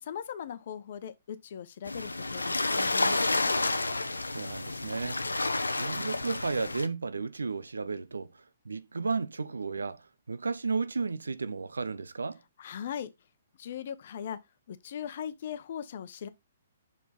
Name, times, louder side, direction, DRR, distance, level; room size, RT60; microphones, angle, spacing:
voice 1, 0.0-3.5 12.6-13.1 13.6-14.4 14.7-16.3, left 9 dB, 50° left, 0.9 m, -39 dB
sound 1, 1.9-6.9, left 2 dB, 85° left, 0.6 m, -30 dB
voice 2, 4.2-5.2 5.7-12.4, right 4 dB, 75° right, 0.6 m, -33 dB
6.0 x 4.6 x 4.2 m
figure-of-eight pair, 125°, 0 cm